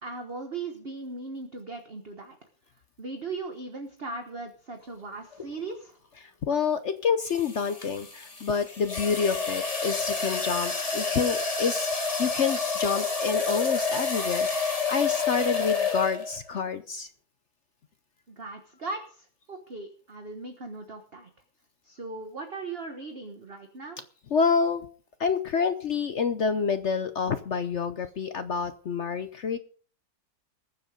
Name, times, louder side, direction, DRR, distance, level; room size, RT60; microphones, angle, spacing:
voice 1, 0.0-2.4 3.0-6.0 18.3-21.3 21.8-24.0, right 3 dB, 35° right, 5 dB, 1.4 m, -38 dB
sound 1, 5.3-5.6 7.3-16.5, left 4 dB, 20° left, 1.4 m, -29 dB
voice 2, 6.2-17.1 24.3-24.9 25.2-29.6, left 5 dB, 60° left, 10 dB, 0.8 m, -28 dB
20.5 x 7.6 x 5.1 m, 0.44 s
omnidirectional pair, 2.0 m